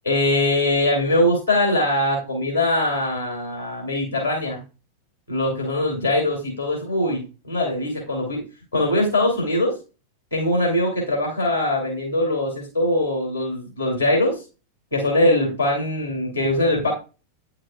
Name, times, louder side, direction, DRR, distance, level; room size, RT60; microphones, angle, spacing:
voice 1, 0.0-4.6 5.3-8.4 8.7-9.7 10.3-14.4 14.9-16.9, left 1 dB, 90° left, -2 dB, 2.6 m, -22 dB
9.1 x 5.6 x 2.4 m, 0.32 s
figure-of-eight pair, 90°, 0 cm